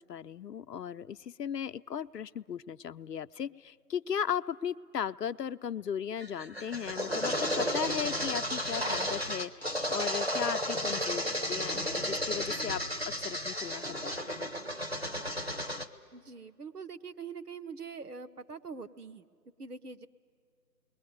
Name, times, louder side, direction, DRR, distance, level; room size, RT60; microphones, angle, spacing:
voice 1, 0.0-14.5, left 8 dB, 75° left, 11 dB, 0.6 m, -37 dB
sound 1, 6.2-15.9, equal, 40° right, 0.7 m, -33 dB
voice 2, 16.1-19.2 19.6-20.1, right 5 dB, 70° right, 9 dB, 1.0 m, -43 dB
29.0 x 21.5 x 9.3 m, 2.1 s
figure-of-eight pair, 180°, 48 cm